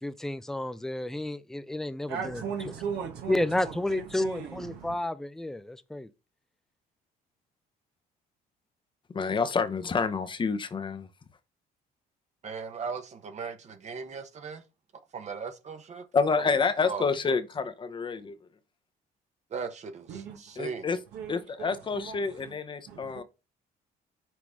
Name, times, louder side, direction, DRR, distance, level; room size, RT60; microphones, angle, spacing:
voice 1, 0.0-2.4 3.3-6.1, left 1 dB, ahead, 0.5 m, -31 dB
voice 2, 2.1-5.0 20.1-20.4 21.1-22.5 22.9-23.2, right 6 dB, 75° right, 1.2 m, -38 dB
voice 3, 9.1-11.1 16.1-18.3 20.6-21.0 21.3-23.2, left 5 dB, 30° left, 0.8 m, -28 dB
voice 4, 12.4-14.6 15.1-16.0 16.3-16.5 16.8-17.1 19.5-20.9, right 5 dB, 40° right, 1.0 m, -38 dB
6.1 x 4.7 x 3.5 m
cardioid pair, 110°, 17 cm